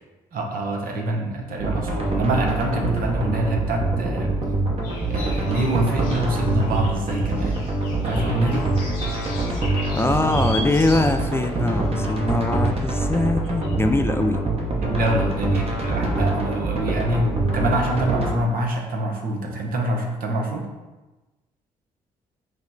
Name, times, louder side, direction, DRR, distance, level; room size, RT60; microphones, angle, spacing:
voice 1, 0.3-4.4 5.1-7.6 8.0-8.7 14.8-20.7, right 1 dB, 60° right, 1 dB, 0.8 m, -25 dB
sound 1, 1.6-18.3, right 2 dB, 40° right, 1.0 m, -25 dB
sound 2, 4.8-11.5 12.0-12.1 12.9-13.2 13.4-13.8, left 2 dB, 75° left, 1.5 m, -38 dB
voice 2, 9.9-14.4, left 2 dB, 15° left, 6 dB, 0.3 m, -22 dB
4.9 x 2.1 x 3.8 m, 1.1 s
hypercardioid pair, 50°, 16 cm